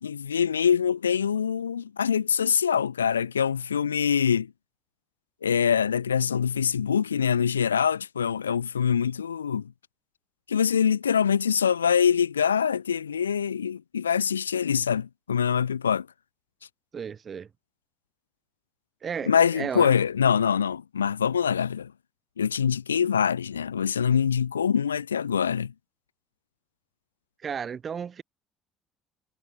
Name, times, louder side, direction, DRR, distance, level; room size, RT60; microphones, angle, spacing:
voice 1, 0.0-4.5 5.4-9.7 10.5-16.1 19.3-21.9 22.4-25.7, left 7 dB, 85° left, 0.6 m, -24 dB
voice 2, 16.9-17.5 19.0-19.9 27.4-28.2, right 7 dB, 40° right, 6.7 m, -34 dB
figure-of-eight pair, 55°, 0 cm